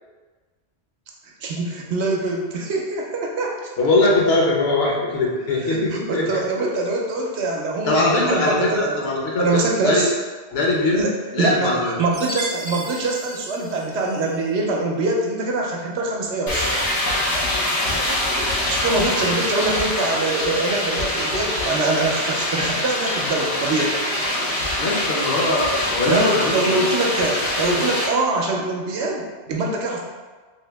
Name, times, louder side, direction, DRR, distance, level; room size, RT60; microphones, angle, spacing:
voice 1, 1.4-3.7 5.6-9.0 9.4-10.1 10.9-16.7 18.6-24.0 26.1-30.0, right 2 dB, 80° right, -1 dB, 0.9 m, -24 dB
voice 2, 3.8-6.4 7.8-10.0 10.5-11.0 11.3-12.0 24.8-26.9 27.7-27.8, left 2 dB, 65° left, -3 dB, 1.0 m, -21 dB
Chime, 12.1-14.5, equal, 35° right, 0.5 m, -35 dB
sound 1, 16.5-28.1, left 1 dB, 85° left, 1.2 m, -24 dB
3.1 x 2.7 x 3.3 m, 1.4 s
omnidirectional pair, 1.2 m